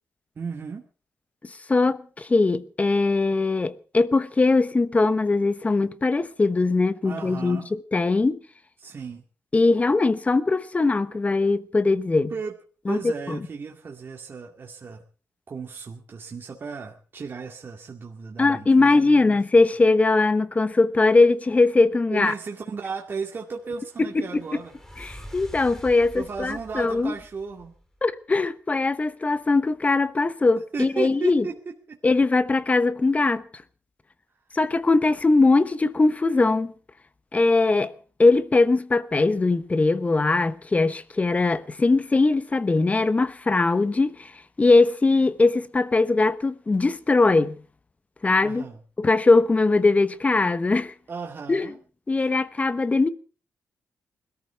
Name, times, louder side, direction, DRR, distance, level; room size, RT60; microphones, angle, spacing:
voice 1, 0.4-0.8 7.0-7.7 8.8-9.2 12.3-12.6 12.9-15.0 15.5-19.4 22.1-24.8 25.1-25.2 26.1-27.7 30.6-32.0 48.4-48.8 51.1-51.8, right 5 dB, 45° right, 2.2 m, -35 dB
voice 2, 1.7-8.4 9.5-12.3 12.9-13.4 18.4-22.3 25.0-27.1 28.0-31.4 32.0-33.4 34.5-36.7 37.3-37.9 38.2-44.3 44.6-47.6 48.2-48.6 49.0-50.9 51.5-51.7 52.1-53.1, left 3 dB, 25° left, 1.0 m, -21 dB
sound 1, 23.2-28.2, equal, 10° left, 3.8 m, -46 dB
21.0 x 14.0 x 4.6 m
cardioid pair, 85°, 5 cm